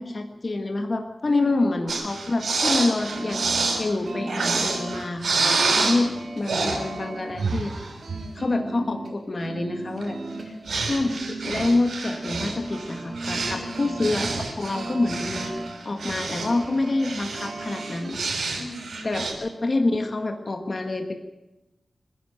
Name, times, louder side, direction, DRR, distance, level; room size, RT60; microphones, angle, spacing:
voice 1, 0.0-7.9 8.4-10.2 10.8-11.1 11.4-14.3 14.6-15.5 15.9-18.2 19.0-21.1, left 2 dB, 40° left, 5 dB, 1.6 m, -27 dB
voice 2, 1.3-2.1 8.0-8.5 10.3-10.8 13.5-13.9 18.5-19.3, left 1 dB, 90° left, 3 dB, 3.9 m, -41 dB
sound 1, 1.9-6.2 6.5-6.8 7.4-8.2 10.0-10.1 10.7-16.7 17.0-19.3, right 3 dB, 85° right, 6.3 m, -28 dB
sound 2, 3.1-18.6, right 2 dB, 55° right, 3.6 m, -38 dB
26.5 x 11.0 x 9.0 m, 0.98 s
wide cardioid pair, 125°, 0 cm